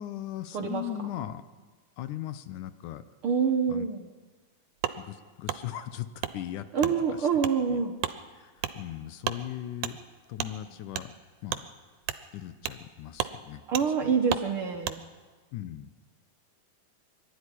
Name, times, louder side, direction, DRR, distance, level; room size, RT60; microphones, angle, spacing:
voice 1, 0.0-1.4 2.0-3.0 3.7-3.9 5.0-7.3 7.7-7.8 8.3-10.0 10.3-11.1 11.4-11.7 12.3-13.6 14.0-14.1 15.5-15.9, left 12 dB, 75° left, 12 dB, 2.3 m, -38 dB
voice 2, 3.2-4.1 6.7-8.0 13.7-15.0, right 6 dB, 55° right, 4 dB, 1.6 m, -26 dB
Wood, 4.8-5.0 5.5-5.6 6.2-6.4 6.8-7.0 7.4-7.6 8.0-8.2 8.6-8.8 9.2-9.4 9.8-9.9 10.4-10.5 10.9-11.1 11.5-11.6 12.0-12.2 12.6-12.8 13.1-13.3 13.7-13.9 14.3-14.5 14.8-15.0, right 12 dB, 80° right, 2.3 m, -32 dB
23.0 x 13.0 x 10.0 m, 1.4 s
omnidirectional pair, 3.8 m